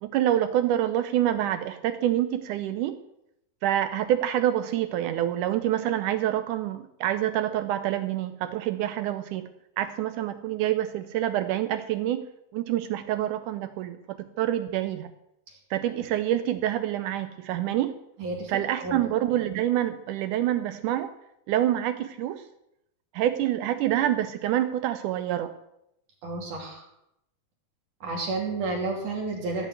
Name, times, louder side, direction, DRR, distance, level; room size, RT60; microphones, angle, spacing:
voice 1, 0.0-3.0 3.6-9.5 9.8-12.3 12.5-15.1 15.7-18.0 18.5-21.1 21.5-22.5 23.1-25.5, right 12 dB, 75° right, 11 dB, 2.0 m, -27 dB
voice 2, 18.2-18.6 18.8-19.0 26.2-26.8 28.0-29.7, right 3 dB, 60° right, -1 dB, 4.1 m, -31 dB
16.0 x 5.6 x 9.1 m, 0.82 s
omnidirectional pair, 4.0 m